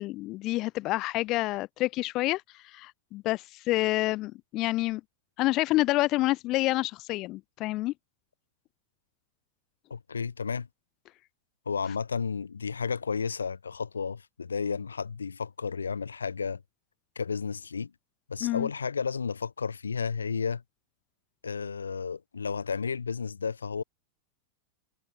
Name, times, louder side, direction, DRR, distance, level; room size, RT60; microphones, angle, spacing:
voice 1, 0.0-5.0 5.4-7.9 18.4-18.7, left 18 dB, 40° left, 0.9 m, -28 dB
voice 2, 9.9-10.7 11.7-16.6 17.2-17.9 18.3-20.6 21.4-23.8, left 5 dB, 75° left, 1.2 m, -32 dB
figure-of-eight pair, 90°, 0 cm